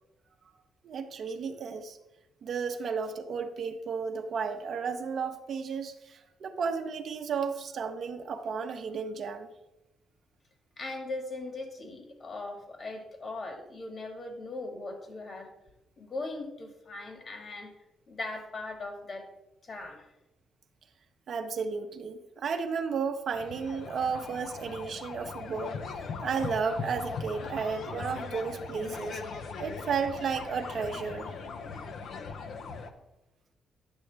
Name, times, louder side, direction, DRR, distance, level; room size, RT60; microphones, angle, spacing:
voice 1, 0.8-2.0 2.4-9.5 21.3-25.7 26.2-29.2 29.6-31.3, right 5 dB, 60° right, 6 dB, 0.7 m, -33 dB
voice 2, 10.8-15.5 16.0-17.7 18.1-19.3 19.6-20.1, left 2 dB, 45° left, 4 dB, 1.7 m, -39 dB
sound 1, 23.3-32.9, left 5 dB, 65° left, 0.7 m, -39 dB
9.7 x 6.2 x 3.4 m, 0.95 s
cardioid pair, 90°, 0 cm